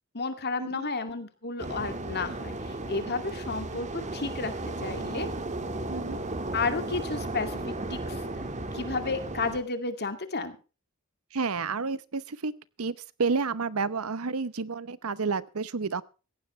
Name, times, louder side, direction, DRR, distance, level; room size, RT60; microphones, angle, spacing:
voice 1, 0.1-5.3 6.5-7.6 7.9-8.2 8.7-10.6, left 3 dB, 50° left, 8 dB, 2.3 m, -32 dB
sound 1, 1.6-9.6, right 2 dB, 35° right, 1.8 m, -35 dB
voice 2, 5.9-6.2 11.3-12.5 12.8-16.0, right 4 dB, 75° right, 17 dB, 0.8 m, -30 dB
17.5 x 15.5 x 3.2 m, 0.34 s
head